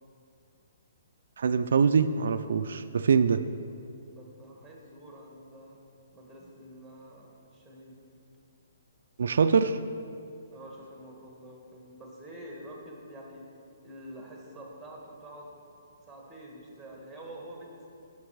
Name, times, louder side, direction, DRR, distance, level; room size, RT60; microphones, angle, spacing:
voice 1, 1.4-3.4 9.2-9.8, right 6 dB, 70° right, 10 dB, 0.3 m, -24 dB
voice 2, 4.1-5.8 6.1-8.0 10.5-13.4 13.8-15.6 16.1-17.9, right 1 dB, ahead, -2 dB, 1.5 m, -47 dB
9.7 x 6.6 x 4.6 m, 2.5 s
hypercardioid pair, 160°, 0 cm